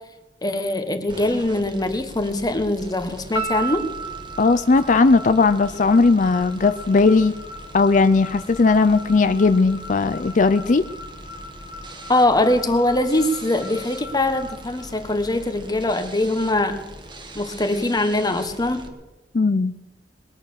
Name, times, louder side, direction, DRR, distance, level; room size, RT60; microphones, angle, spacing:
voice 1, 0.4-3.8 12.1-16.8 17.3-18.9, left 1 dB, 20° left, 8 dB, 1.3 m, -22 dB
sound 1, 1.1-18.9, right 1 dB, 25° right, 1.5 m, -41 dB
sound 2, 3.3-15.6, right 2 dB, 75° left, 1.9 m, -37 dB
voice 2, 4.4-7.3 7.7-10.9 19.3-19.7, left 3 dB, 45° left, 12 dB, 0.5 m, -17 dB
21.5 x 9.0 x 6.5 m, 1.2 s
head